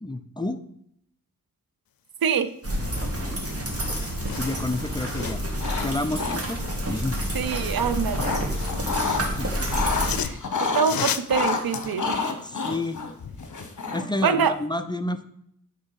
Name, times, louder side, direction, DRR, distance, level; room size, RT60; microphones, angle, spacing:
voice 1, 0.0-0.6 3.0-3.4 4.3-5.4 5.8-6.6 6.9-7.2 8.2-8.6 9.2-9.7 12.4-13.0 13.9-15.2, left 2 dB, 15° left, 9 dB, 0.5 m, -30 dB
sound 1, 2.6-10.2, equal, 40° right, 1.7 m, -29 dB
sound 2, 3.0-3.1 3.4-5.6 7.7-8.8 9.6-13.0 13.4-13.5, left 9 dB, 90° left, 0.5 m, -35 dB
sound 3, 5.5-5.9 6.1-6.8 7.7-9.2 9.6-10.9 11.3-14.2, left 4 dB, 60° left, 1.1 m, -29 dB
voice 2, 7.3-8.4 10.2-12.3 14.2-14.5, right 6 dB, 90° right, 11 dB, 0.6 m, -25 dB
8.2 x 3.5 x 5.7 m, 0.71 s
wide cardioid pair, 85°, 35 cm